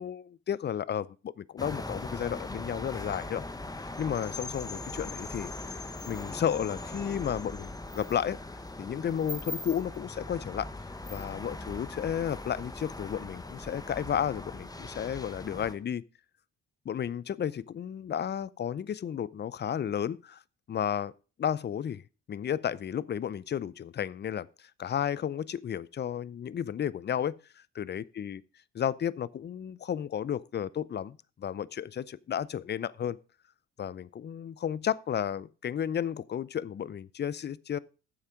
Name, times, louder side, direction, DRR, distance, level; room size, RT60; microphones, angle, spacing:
voice 1, 0.0-3.4 4.0-8.4 8.8-10.7 11.1-16.0 16.9-20.4 20.7-21.1 21.4-22.0 22.3-28.4 28.8-33.2 33.8-37.8, left 9 dB, 35° left, 0.5 m, -33 dB
sound 1, 1.6-15.7, left 2 dB, 10° left, 1.1 m, -40 dB
8.8 x 7.2 x 5.0 m
cardioid pair, 90°, 30 cm